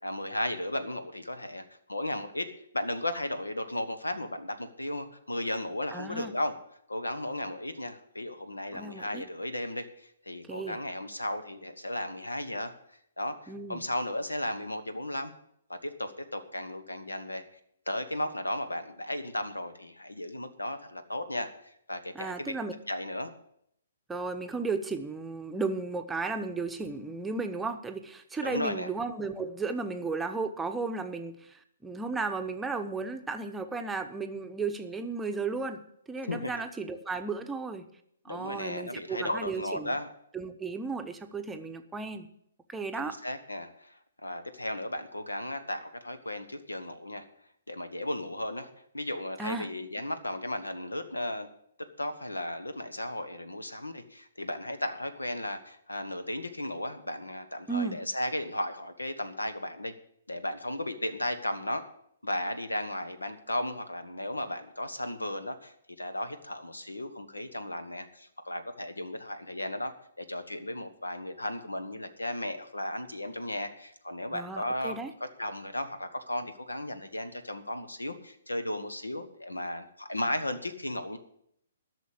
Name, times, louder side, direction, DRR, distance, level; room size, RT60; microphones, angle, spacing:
voice 1, 0.0-6.6 6.9-12.7 13.2-15.3 15.7-17.4 17.9-21.5 21.9-22.5 22.9-23.3 28.4-28.9 36.3-36.5 38.3-40.1 43.0-47.2 47.7-48.7 48.9-51.5 52.0-59.9 60.3-61.8 62.2-69.9 70.2-81.2, left 1 dB, 85° left, 10 dB, 1.3 m, -35 dB
voice 2, 5.9-6.3 8.7-9.2 10.4-10.8 13.5-13.8 22.1-22.7 24.1-35.8 36.1-37.8 38.2-40.0 40.3-42.3 42.7-43.2 49.4-49.7 57.7-58.0 74.3-75.1, right 4 dB, 10° right, 6 dB, 0.9 m, -34 dB
12.5 x 6.5 x 8.2 m, 0.72 s
figure-of-eight pair, 125°, 0 cm